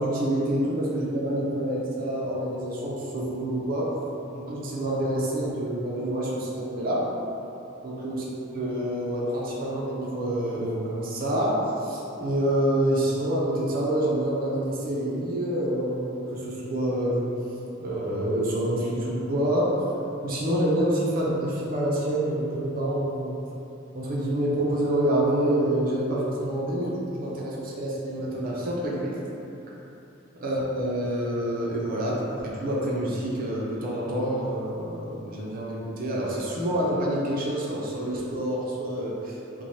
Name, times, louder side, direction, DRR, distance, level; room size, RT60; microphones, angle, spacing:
voice 1, 0.0-4.0 4.3-7.1 7.8-8.3 8.5-17.3 17.8-19.7 20.2-23.4 23.9-29.1 30.4-39.3, right 1 dB, 45° right, -5 dB, 0.4 m, -27 dB
3.0 x 2.2 x 2.6 m, 2.9 s
head